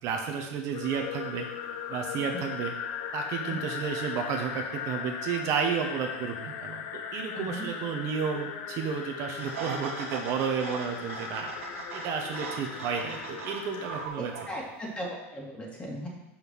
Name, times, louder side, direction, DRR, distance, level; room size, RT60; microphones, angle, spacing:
voice 1, 0.0-1.5 1.9-2.7 3.1-11.5 11.9-14.3, right 6 dB, 50° right, 2 dB, 1.1 m, -32 dB
sound 1, 0.7-14.1, left 8 dB, 55° left, 0.7 m, -38 dB
voice 2, 7.3-7.7 14.2-16.1, equal, 15° left, -2 dB, 2.2 m, -38 dB
Coffee Steam, 9.4-15.1, right 5 dB, 90° right, 1.2 m, -40 dB
5.8 x 5.3 x 6.2 m, 0.94 s
supercardioid pair, 125°, 7 cm